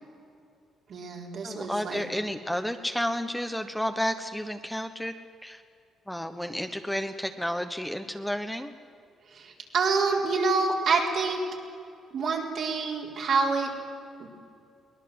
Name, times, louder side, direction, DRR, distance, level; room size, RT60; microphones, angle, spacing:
voice 1, 0.9-2.0 9.3-11.4 12.1-13.7 14.2-14.3, right 4 dB, 60° right, -1 dB, 4.3 m, -27 dB
voice 2, 1.4-5.1 5.4-5.6 6.1-8.7, equal, 5° left, 7 dB, 1.1 m, -31 dB
22.5 x 19.0 x 7.9 m, 2.4 s
cardioid pair, 90°, 0 cm